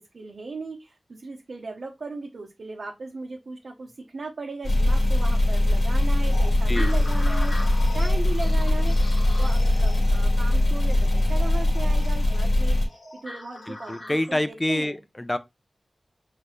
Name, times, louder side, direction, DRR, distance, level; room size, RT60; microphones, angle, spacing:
voice 1, 0.0-9.0 9.4-15.0, right 3 dB, 80° right, 0.7 m, -37 dB
sound 1, 4.6-12.9, left 1 dB, 85° left, 1.7 m, -21 dB
sound 2, 6.3-14.5, left 1 dB, 60° left, 1.5 m, -41 dB
voice 2, 13.7-15.4, left 1 dB, 20° left, 0.5 m, -27 dB
5.6 x 3.3 x 2.4 m
wide cardioid pair, 70°, 0 cm